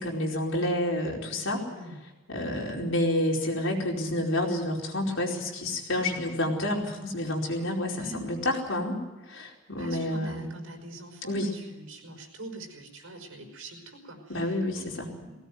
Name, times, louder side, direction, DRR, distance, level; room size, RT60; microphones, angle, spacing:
voice 1, 0.0-1.6 2.3-9.0 9.3-10.5 11.2-11.5 14.3-15.1, left 1 dB, 65° left, -1 dB, 4.8 m, -29 dB
voice 2, 1.6-2.0 7.9-8.2 9.7-14.9 15.2-15.4, right 1 dB, 85° right, 4 dB, 5.4 m, -44 dB
20.0 x 17.5 x 9.3 m, 1.1 s
head